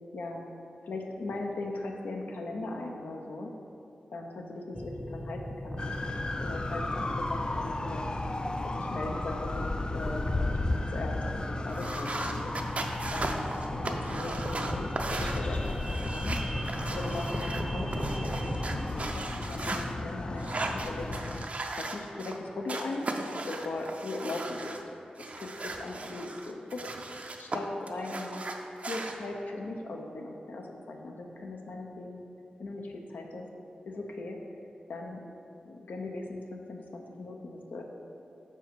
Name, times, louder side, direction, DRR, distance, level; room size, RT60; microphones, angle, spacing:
voice 1, 0.1-0.4 0.8-3.5 4.1-5.8 6.4-8.1 8.6-12.5 13.1-13.4 13.7-16.4 16.9-21.1 21.7-24.7 25.2-26.8 27.4-28.5 28.9-32.2 32.6-33.5 33.9-34.4 34.9-35.2 35.6-37.8, left 2 dB, 80° left, 1 dB, 0.7 m, -39 dB
sound 1, 4.7-18.9, equal, ahead, 0.7 m, -39 dB
sound 2, 5.8-21.5, left 2 dB, 30° left, 0.3 m, -34 dB
sound 3, 11.7-19.8 20.3-22.4 22.7-24.8 25.2-27.6 27.9-29.1, right 2 dB, 50° right, 0.5 m, -37 dB
5.4 x 4.5 x 4.7 m, 2.6 s
cardioid pair, 55°, 3 cm